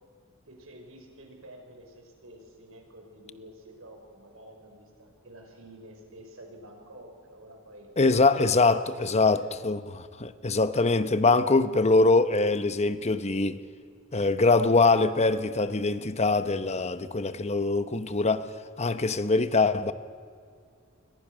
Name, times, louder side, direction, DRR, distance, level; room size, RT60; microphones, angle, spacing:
voice 1, 0.5-7.9 8.3-9.6, right 1 dB, 75° right, 5.8 m, -49 dB
voice 2, 8.0-13.6 14.1-18.5 18.8-19.9, left 3 dB, 30° left, 1.0 m, -23 dB
29.0 x 23.0 x 6.3 m
head